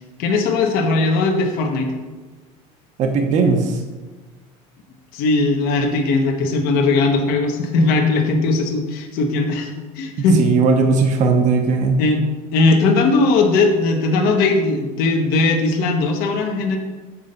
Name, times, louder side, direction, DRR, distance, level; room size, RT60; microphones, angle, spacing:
voice 1, 0.2-1.9 5.1-10.4 12.0-12.2 12.5-16.8, left 3 dB, 60° left, 2 dB, 1.0 m, -18 dB
voice 2, 3.0-3.8 10.4-12.0, right 4 dB, 45° right, 4 dB, 0.8 m, -17 dB
7.3 x 3.9 x 5.3 m, 1.3 s
cardioid pair, 135°, 18 cm